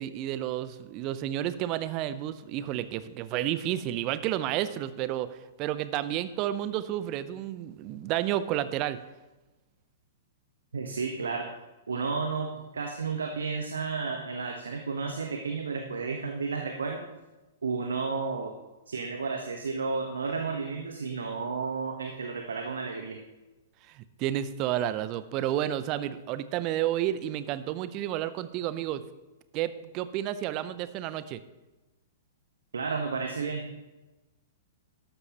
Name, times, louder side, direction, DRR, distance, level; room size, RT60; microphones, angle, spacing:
voice 1, 0.0-9.0 23.9-29.0 29.5-31.4, right 12 dB, 35° right, 14 dB, 0.6 m, -31 dB
voice 2, 10.7-11.5 11.9-17.0 17.6-18.5 18.9-23.2 32.7-33.7, right 4 dB, 75° right, 3 dB, 1.1 m, -32 dB
12.5 x 12.0 x 3.0 m, 1.1 s
figure-of-eight pair, 110°, 0 cm